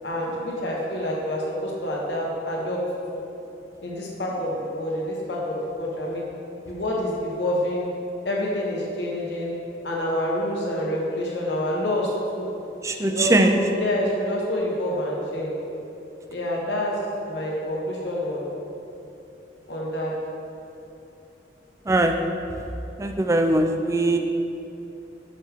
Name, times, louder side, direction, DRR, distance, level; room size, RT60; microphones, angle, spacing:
voice 1, 0.0-2.8 3.1-3.2 3.8-6.2 6.7-7.9 8.2-9.5 9.8-12.1 12.4-12.5 13.0-15.6 16.3-17.0 17.3-18.5 19.7-20.1, left 1 dB, 70° left, -3 dB, 1.2 m, -27 dB
voice 2, 12.8-13.6 21.9-22.1 23.0-24.2, right 2 dB, 15° right, 6 dB, 0.3 m, -20 dB
6.3 x 5.9 x 3.6 m, 3.0 s
head